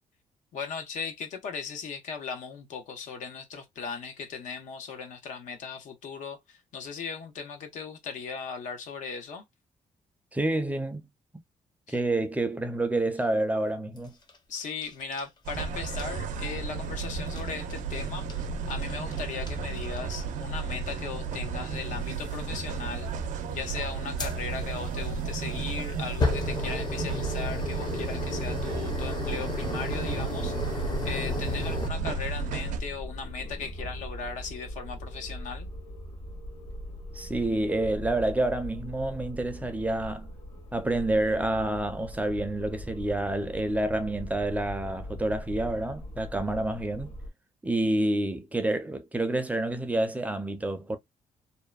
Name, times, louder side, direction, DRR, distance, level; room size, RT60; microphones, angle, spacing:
voice 1, 0.5-9.4 11.9-12.0 14.5-18.3 18.7-35.7, left 5 dB, 85° left, 0.9 m, -38 dB
voice 2, 10.3-11.1 11.9-14.1 37.1-40.3 40.7-47.1 47.6-51.0, right 1 dB, 10° right, 0.5 m, -28 dB
sound 1, 14.0-15.6 15.8-16.1 17.3-17.7 18.3-18.4 18.7-19.2 19.5-19.6 19.8-20.2 21.3-21.4 22.2-22.4 24.2-31.9, left 3 dB, 35° left, 0.7 m, -34 dB
sound 2, 15.5-32.8, right 5 dB, 90° right, 0.5 m, -33 dB
sound 3, 30.9-47.3, equal, 55° left, 1.1 m, -40 dB
2.8 x 2.1 x 2.2 m
cardioid pair, 135°, 13 cm